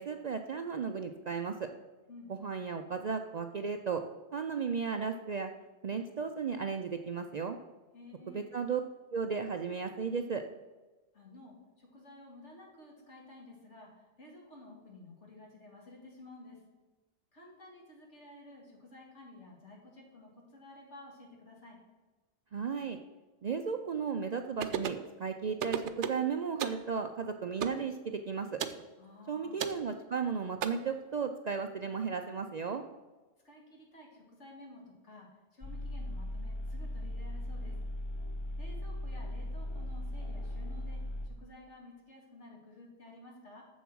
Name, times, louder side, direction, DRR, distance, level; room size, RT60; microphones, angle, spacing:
voice 1, 0.0-1.7 2.3-4.0 4.3-5.5 5.8-7.6 8.3-8.8 9.1-10.4 22.5-23.0 23.4-28.6 29.3-32.8, right 6 dB, 55° right, 6 dB, 0.4 m, -35 dB
voice 2, 7.9-8.5 11.1-16.6 17.3-21.8 29.0-29.6 33.4-37.8 38.6-43.6, left 2 dB, 75° left, -1 dB, 2.6 m, -53 dB
sound 1, 24.6-25.1 25.6-26.2 26.6-26.8 27.6-27.8 28.6-28.8 29.6-29.8 30.6-30.7, right 8 dB, 80° right, 1.0 m, -34 dB
sound 2, 35.6-41.3, left 1 dB, 30° left, 0.6 m, -38 dB
7.2 x 7.1 x 6.1 m, 1.2 s
omnidirectional pair, 1.2 m